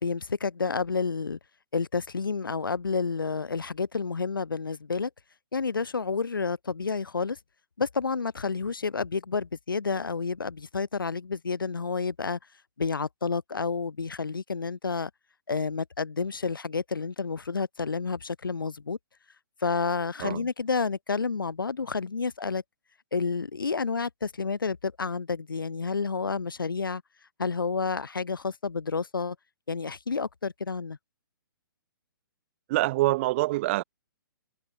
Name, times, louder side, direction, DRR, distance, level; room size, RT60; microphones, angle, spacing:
voice 1, 0.0-1.4 1.7-5.1 5.5-7.4 7.8-12.4 12.8-15.1 15.5-19.0 19.6-22.6 23.1-27.0 27.4-29.4 29.7-31.0, left 5 dB, 70° left, 3.6 m, -30 dB
voice 2, 32.7-33.8, right 19 dB, 35° right, 2.0 m, -25 dB
figure-of-eight pair, 125°, 12 cm